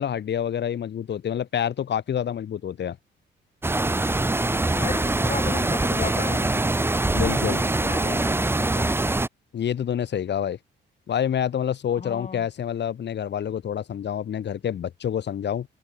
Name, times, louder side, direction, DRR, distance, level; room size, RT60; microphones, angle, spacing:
voice 1, 0.0-3.0 7.1-7.6 9.5-10.6 11.1-15.7, left 9 dB, 60° left, 7.1 m, -27 dB
sound 1, 3.6-9.3, right 2 dB, 10° right, 1.0 m, -23 dB
voice 2, 4.7-6.6 7.6-8.9 11.9-12.5, left 5 dB, 35° left, 5.9 m, -35 dB
cardioid pair, 90°, 20 cm